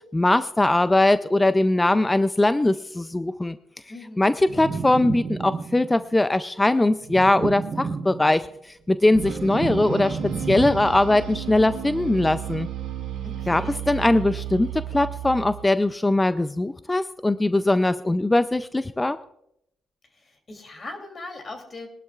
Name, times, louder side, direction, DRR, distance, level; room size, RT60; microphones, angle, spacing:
voice 1, 0.1-3.6 4.2-8.5 8.9-10.2 10.5-12.7 13.5-19.2, left 2 dB, 15° left, 12 dB, 0.4 m, -21 dB
voice 2, 3.9-4.3 13.2-13.8 20.0-21.9, left 2 dB, 35° left, 5 dB, 2.9 m, -40 dB
sound 1, 4.5-6.0 7.0-8.5 8.9-11.3, right 5 dB, 40° right, 1.0 m, -31 dB
sound 2, 9.1-15.7, right 10 dB, 85° right, 2.5 m, -34 dB
22.0 x 12.0 x 2.4 m, 0.79 s
cardioid pair, 90°, 0 cm